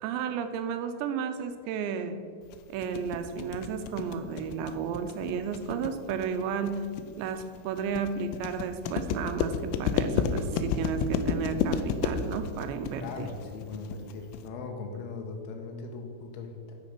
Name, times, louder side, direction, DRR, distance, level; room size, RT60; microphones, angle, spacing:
voice 1, 0.0-2.1 2.7-6.9 7.2-13.3, right 6 dB, 85° right, 8 dB, 2.8 m, -33 dB
sound 1, 2.5-14.5, left 7 dB, 90° left, 2.9 m, -31 dB
voice 2, 13.0-16.8, left 4 dB, 75° left, 2 dB, 2.5 m, -39 dB
11.5 x 5.3 x 5.9 m, 2.1 s
omnidirectional pair, 5.1 m